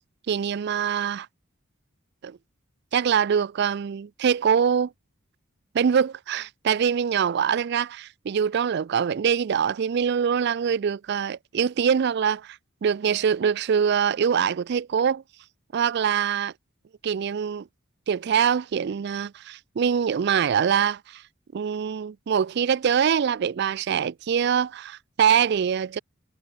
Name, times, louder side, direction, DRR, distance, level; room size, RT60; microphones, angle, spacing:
voice 1, 0.3-1.3 2.2-2.4 2.9-4.9 5.7-15.2 15.7-16.5 17.0-17.7 18.1-21.2 21.5-26.0, right 7 dB, 55° right, 0.4 m, -24 dB
head